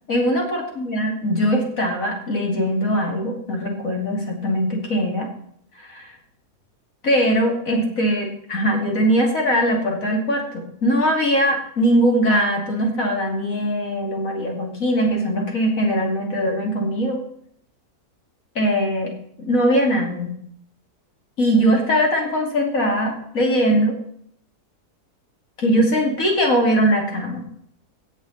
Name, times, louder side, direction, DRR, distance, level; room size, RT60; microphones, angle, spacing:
voice 1, 0.1-5.3 5.8-6.1 7.0-17.2 18.5-19.1 19.4-20.3 21.4-23.9 25.6-27.4, equal, 60° left, 0 dB, 3.0 m, -21 dB
16.5 x 6.9 x 4.1 m, 0.66 s
omnidirectional pair, 1.6 m